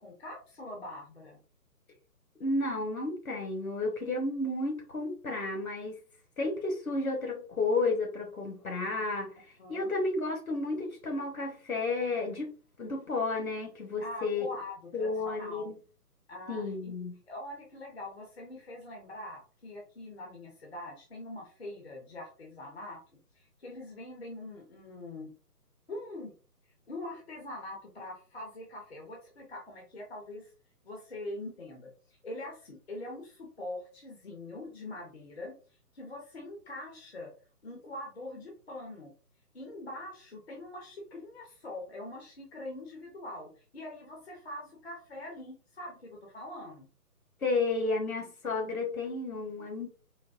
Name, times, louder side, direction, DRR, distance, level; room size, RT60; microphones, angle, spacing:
voice 1, 0.0-1.4 9.6-10.0 14.0-15.7 16.3-16.9 17.3-23.0 23.3-25.3 25.9-26.3 26.9-30.5 30.8-35.5 35.9-37.3 37.6-39.1 39.5-46.9, left 1 dB, 40° left, 0.7 m, -43 dB
voice 2, 2.4-6.0 6.4-9.3 9.7-12.5 12.8-14.5 14.9-15.7 16.5-17.2 47.4-49.9, left 3 dB, 60° left, 1.0 m, -32 dB
3.9 x 2.1 x 2.4 m
figure-of-eight pair, 145°, 48 cm